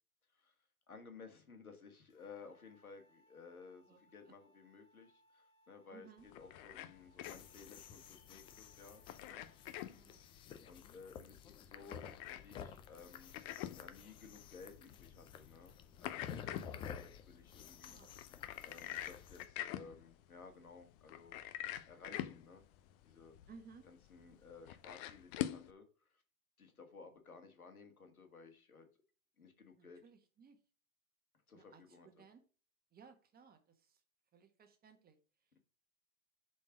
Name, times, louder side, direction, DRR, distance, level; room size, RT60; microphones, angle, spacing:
voice 1, 0.9-9.5 10.6-13.3 13.8-18.0 18.6-21.4 21.9-22.6 23.0-23.4 23.8-26.2 26.6-28.9 29.4-30.0 31.5-32.2, left 4 dB, 90° left, 1.9 m, -57 dB
sound 1, 2.1-9.7, equal, 65° left, 2.1 m, -72 dB
voice 2, 5.9-6.3 9.7-10.3 17.9-18.1 23.5-23.9 29.8-30.6 31.5-32.4 32.9-34.0 34.3-35.2, right 5 dB, 20° right, 1.4 m, -60 dB
sound 2, 6.2-25.7, left 13 dB, 40° left, 0.7 m, -47 dB
sound 3, 7.2-19.5, left 8 dB, 15° left, 0.3 m, -53 dB
6.9 x 4.5 x 6.0 m
hypercardioid pair, 100°, 42 cm